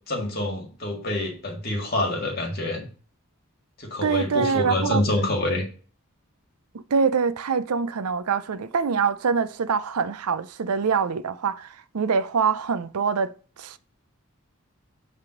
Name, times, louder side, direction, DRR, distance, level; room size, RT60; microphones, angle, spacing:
voice 1, 0.1-2.9 3.8-5.6, left 1 dB, 45° left, 2.0 m, -26 dB
voice 2, 4.0-5.0 6.9-13.3 13.6-13.8, right 5 dB, 85° right, 0.5 m, -24 dB
8.2 x 3.6 x 5.1 m
head